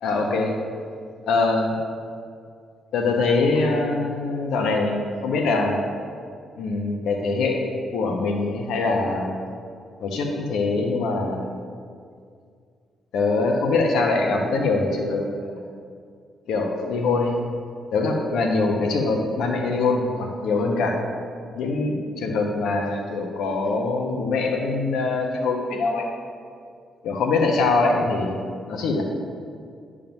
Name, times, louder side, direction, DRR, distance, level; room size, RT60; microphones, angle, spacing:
voice 1, 0.0-0.5 1.3-1.8 2.9-5.8 6.6-9.3 10.0-11.5 13.1-15.6 16.5-17.4 17.9-21.0 21.6-26.1 27.0-28.4 28.7-29.0, left 3 dB, 85° left, 1 dB, 1.1 m, -23 dB
10.5 x 3.8 x 7.2 m, 2.2 s
cardioid pair, 155°, 0 cm